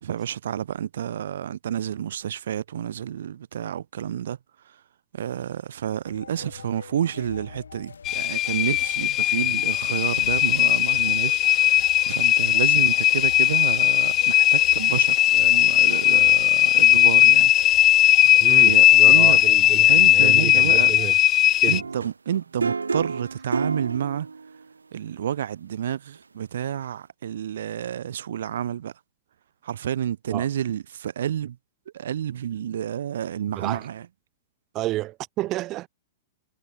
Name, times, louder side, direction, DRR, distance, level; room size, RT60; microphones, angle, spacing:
voice 1, 0.0-4.4 5.1-17.5 18.6-19.4 19.9-20.9 21.7-24.3 24.9-28.9 29.6-31.6 31.9-34.0, right 10 dB, 70° right, 3.9 m, -30 dB
sound 1, 6.0-21.2, left 6 dB, 80° left, 6.1 m, -42 dB
sound 2, 8.1-21.8, left 13 dB, 30° left, 0.4 m, -18 dB
voice 2, 18.4-21.2 21.6-21.8 30.3-30.5 33.5-33.9 34.7-35.9, right 17 dB, 35° right, 3.7 m, -30 dB
sound 3, 21.7-24.6 26.2-26.3, right 4 dB, 90° right, 0.8 m, -29 dB
hypercardioid pair, 110°, 0 cm